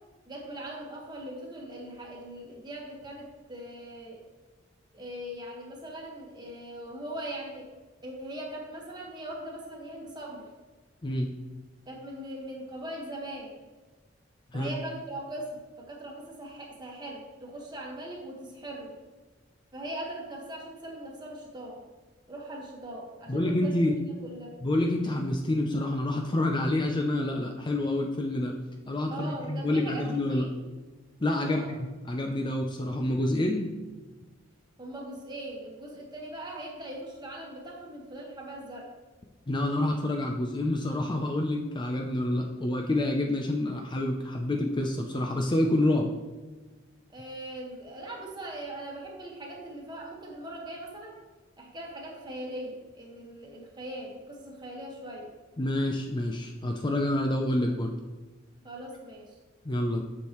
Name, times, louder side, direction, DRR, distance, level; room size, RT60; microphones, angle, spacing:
voice 1, 0.3-4.2 4.9-7.7 8.0-10.5 11.8-13.5 14.5-18.9 19.7-21.8 22.3-23.8 24.2-24.5 29.1-30.6 31.4-31.7 34.8-38.9 47.1-51.2 51.6-55.3 58.6-59.3, right 1 dB, 20° right, -1 dB, 1.4 m, -40 dB
voice 2, 23.3-24.0 24.6-28.5 28.9-30.5 31.2-33.7 39.5-46.1 55.6-57.9 59.6-60.0, left 1 dB, 25° left, 2 dB, 0.5 m, -28 dB
8.5 x 6.5 x 3.0 m, 1.3 s
head